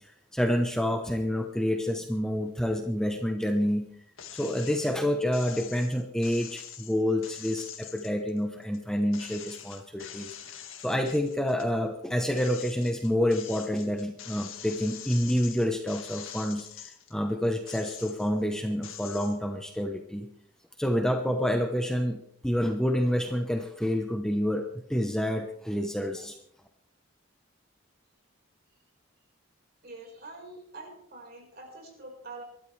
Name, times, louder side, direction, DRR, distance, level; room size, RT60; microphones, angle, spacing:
voice 1, 0.0-3.9 4.4-10.4 10.8-20.3 20.8-26.4, equal, 5° left, 4 dB, 0.9 m, -28 dB
sound 1, 4.2-4.9 5.3-8.8 9.1-11.7 12.1-17.1 17.6-18.4 18.8-19.4, left 9 dB, 75° left, 1.9 m, -44 dB
voice 2, 29.8-32.4, right 2 dB, 45° right, 1 dB, 4.9 m, -45 dB
25.0 x 12.5 x 3.3 m, 0.68 s
head